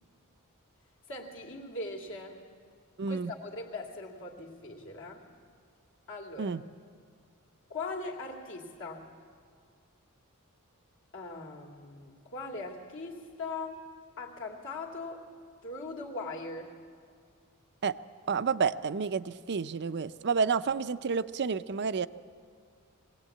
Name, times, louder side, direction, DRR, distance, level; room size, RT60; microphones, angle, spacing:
voice 1, 1.1-2.4 3.1-5.3 6.1-6.6 7.7-9.1 11.1-13.9 14.2-15.3 15.6-16.7, left 3 dB, 60° left, 0 dB, 2.6 m, -40 dB
voice 2, 3.0-3.3 6.4-6.6 17.8-17.9 18.3-22.1, right 5 dB, 50° right, 13 dB, 0.5 m, -30 dB
21.5 x 18.0 x 8.5 m, 2.1 s
head